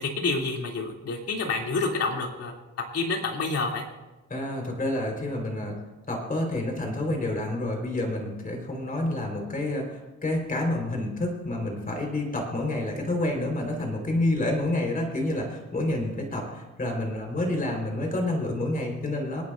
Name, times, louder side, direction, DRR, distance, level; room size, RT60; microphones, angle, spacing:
voice 1, 0.0-2.5 2.9-3.8, left 3 dB, 50° left, 1 dB, 2.9 m, -28 dB
voice 2, 4.3-5.8 6.1-19.4, left 1 dB, 30° left, 1 dB, 4.2 m, -28 dB
27.5 x 9.7 x 2.6 m, 1.1 s
cardioid pair, 90°, 30 cm